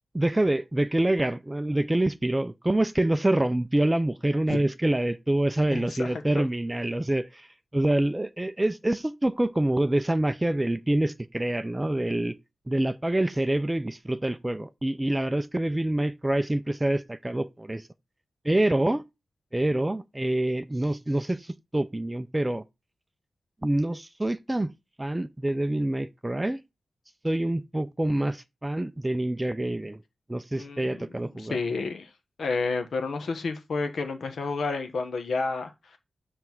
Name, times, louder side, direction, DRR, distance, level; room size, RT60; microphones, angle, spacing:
voice 1, 0.1-12.4 12.7-17.9 18.4-19.0 19.5-22.6 23.6-24.7 25.0-26.6 27.2-30.0 30.3-31.6, right 1 dB, 15° right, 0.4 m, -26 dB
voice 2, 5.7-6.1 30.5-30.9 31.5-32.1 32.4-35.7, left 4 dB, 70° left, 1.2 m, -30 dB
7.6 x 3.3 x 6.0 m
wide cardioid pair, 130°, 0 cm